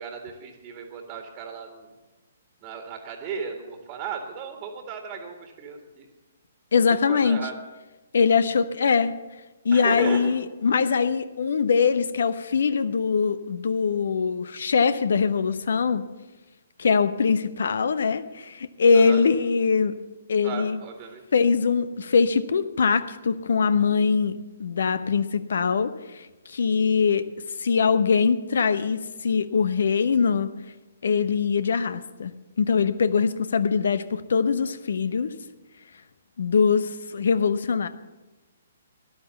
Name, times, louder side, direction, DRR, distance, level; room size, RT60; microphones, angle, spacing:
voice 1, 0.0-1.9 2.6-6.1 7.1-7.5 9.7-10.3 18.9-19.2 20.4-21.2, right 6 dB, 25° right, 3 dB, 1.8 m, -35 dB
voice 2, 6.7-7.4 8.1-9.1 9.6-16.1 16.8-20.0 20.3-20.8 21.3-27.3 27.6-30.5 31.0-32.3 32.6-35.3 36.4-37.9, left 5 dB, 60° left, 13 dB, 0.9 m, -22 dB
13.5 x 11.5 x 6.9 m, 1.1 s
figure-of-eight pair, 125°, 0 cm